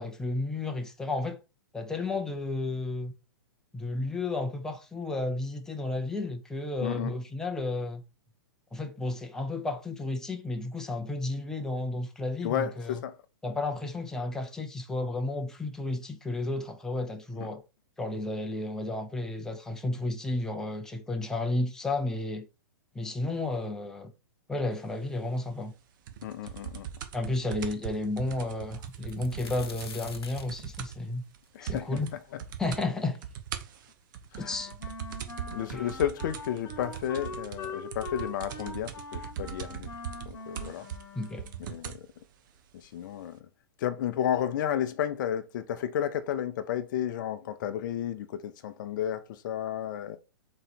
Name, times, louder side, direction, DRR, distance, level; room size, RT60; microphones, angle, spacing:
voice 1, 0.0-1.4 1.7-3.1 3.7-8.0 8.7-13.0 13.4-17.6 18.0-22.5 22.9-24.1 24.5-25.7 27.1-31.2 31.6-32.1 32.6-33.2 34.4-34.7 35.7-35.9 41.2-41.5, left 2 dB, 5° left, 0.6 m, -32 dB
voice 2, 6.8-7.1 12.4-13.2 26.2-26.9 31.5-31.9 34.3-34.5 35.5-39.9 40.3-40.9 41.6-42.1 42.7-43.4 43.8-50.2, left 10 dB, 55° left, 0.6 m, -32 dB
sound 1, 26.1-31.1 31.3-31.4 31.7-32.1 32.4-32.9 33.2-42.1 42.8-42.9, right 9 dB, 55° right, 0.8 m, -40 dB
sound 2, 28.8-32.7 33.1-33.2 34.0-34.1 34.4-35.0 35.9-36.0 36.4-36.6, left 5 dB, 85° left, 0.7 m, -47 dB
Wind instrument woodwind instrument, 34.4-41.8, left 3 dB, 25° left, 1.2 m, -43 dB
3.9 x 3.1 x 4.3 m
hypercardioid pair, 120°, 13 cm